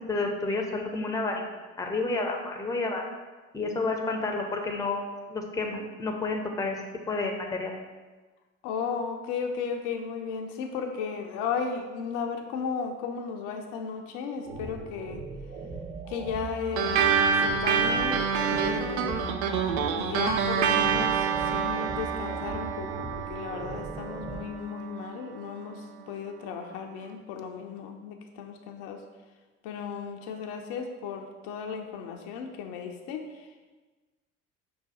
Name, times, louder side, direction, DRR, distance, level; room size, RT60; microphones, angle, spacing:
voice 1, 0.0-1.4 1.8-3.0 3.5-6.8 7.1-7.7, left 3 dB, 10° left, 2 dB, 0.6 m, -30 dB
voice 2, 8.6-15.2 16.1-19.4 20.0-29.0 29.6-33.5, left 6 dB, 55° left, 3 dB, 0.6 m, -35 dB
sound 1, 14.4-24.4, right 2 dB, 35° right, 1.0 m, -39 dB
sound 2, 16.8-25.6, right 7 dB, 60° right, 0.5 m, -27 dB
5.5 x 2.2 x 4.1 m, 1.3 s
figure-of-eight pair, 60°, 39 cm